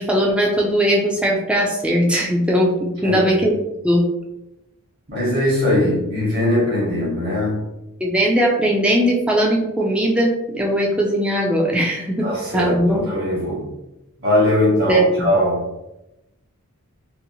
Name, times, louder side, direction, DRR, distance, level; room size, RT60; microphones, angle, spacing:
voice 1, 0.0-3.5 3.8-4.0 8.0-13.1 14.9-15.1, equal, 5° right, -2 dB, 0.3 m, -19 dB
voice 2, 3.0-3.4 5.1-7.6 12.2-13.7 14.2-15.7, left 1 dB, 50° right, -9 dB, 1.0 m, -20 dB
2.7 x 2.2 x 2.7 m, 0.92 s
head